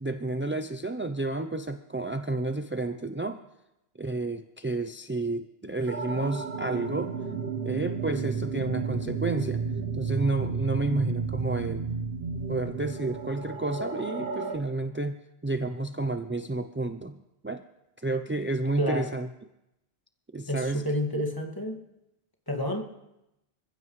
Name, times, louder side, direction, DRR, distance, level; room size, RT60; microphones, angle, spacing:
voice 1, 0.0-3.4 4.0-7.1 7.6-9.6 9.9-11.9 12.5-15.2 15.4-17.2 17.4-17.6 18.0-19.3 20.3-20.9, right 2 dB, 20° right, 8 dB, 0.3 m, -30 dB
sound 1, 5.9-14.6, right 5 dB, 60° right, 1.2 m, -32 dB
voice 2, 18.8-19.1 20.5-21.8 22.5-22.8, left 1 dB, 20° left, 1 dB, 2.0 m, -29 dB
26.0 x 15.5 x 3.2 m, 0.91 s
omnidirectional pair, 1.1 m